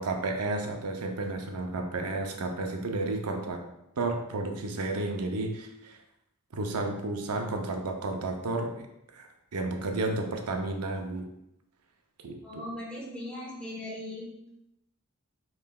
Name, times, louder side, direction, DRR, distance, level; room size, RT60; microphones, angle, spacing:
voice 1, 0.0-3.6 4.0-6.0 6.5-8.9 9.1-11.3 12.2-12.7, right 2 dB, 85° right, 4 dB, 0.6 m, -32 dB
voice 2, 12.4-14.3, left 1 dB, 5° left, -4 dB, 1.0 m, -39 dB
5.4 x 3.1 x 2.3 m, 0.83 s
head